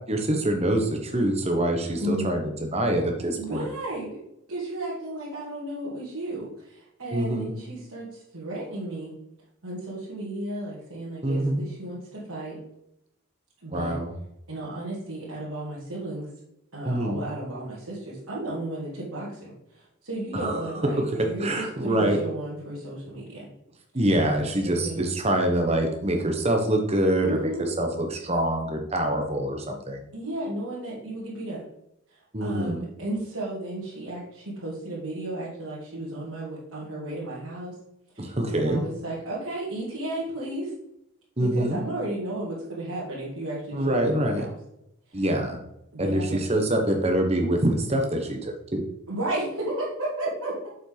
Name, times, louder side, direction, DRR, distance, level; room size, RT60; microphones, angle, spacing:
voice 1, 0.1-3.7 7.1-7.5 11.2-11.6 13.7-14.1 16.8-17.2 20.3-20.6 21.1-22.2 23.9-27.4 27.8-30.0 32.3-32.8 38.2-38.8 41.4-41.8 43.7-44.4 45.1-45.6 46.0-48.8, right 1 dB, 30° right, 4 dB, 1.2 m, -25 dB
voice 2, 2.0-2.3 3.4-4.2 4.5-9.1 9.6-12.6 13.6-14.0 14.5-16.3 16.7-23.5 24.6-25.0 27.2-27.7 30.1-31.6 32.1-37.8 38.1-40.7 41.4-44.5 45.1-45.2 45.9-46.5 49.1-50.7, right 1 dB, 85° right, -9 dB, 2.7 m, -34 dB
7.3 x 5.8 x 4.0 m, 0.81 s
head